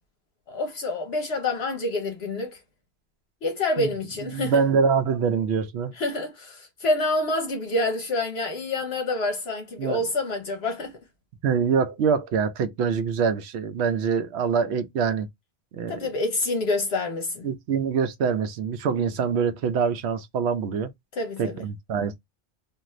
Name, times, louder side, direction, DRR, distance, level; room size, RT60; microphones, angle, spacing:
voice 1, 0.5-2.6 3.4-4.6 5.9-10.9 15.9-17.5 21.1-21.7, left 2 dB, 70° left, 0.9 m, -27 dB
voice 2, 4.3-5.9 9.8-10.0 11.4-15.3 15.8-16.0 17.4-20.9 21.4-22.2, right 6 dB, 75° right, 0.9 m, -24 dB
2.5 x 2.4 x 3.0 m
omnidirectional pair, 1.1 m